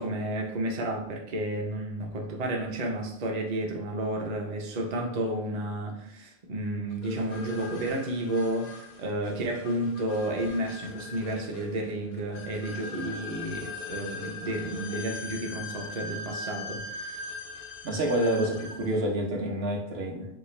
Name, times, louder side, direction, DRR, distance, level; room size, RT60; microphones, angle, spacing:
voice 1, 0.0-17.2, right 1 dB, 45° right, 0 dB, 0.6 m, -31 dB
sound 1, 7.0-19.0, left 3 dB, 85° left, 0.9 m, -40 dB
voice 2, 17.8-20.3, right 1 dB, 70° right, 0 dB, 1.0 m, -28 dB
3.6 x 2.4 x 3.1 m, 0.75 s
omnidirectional pair, 1.1 m